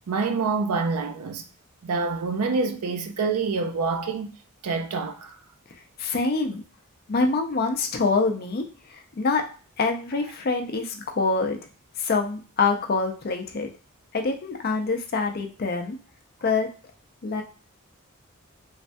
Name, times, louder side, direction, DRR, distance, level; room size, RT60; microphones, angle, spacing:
voice 1, 0.1-1.4 1.8-4.3 4.6-5.3, right 4 dB, 85° right, 0.4 m, -26 dB
voice 2, 6.0-6.6 7.1-9.4 9.8-11.6 12.0-13.7 14.1-16.0 16.4-16.7 17.2-17.4, left 4 dB, 45° left, 0.4 m, -25 dB
3.2 x 2.1 x 2.6 m
head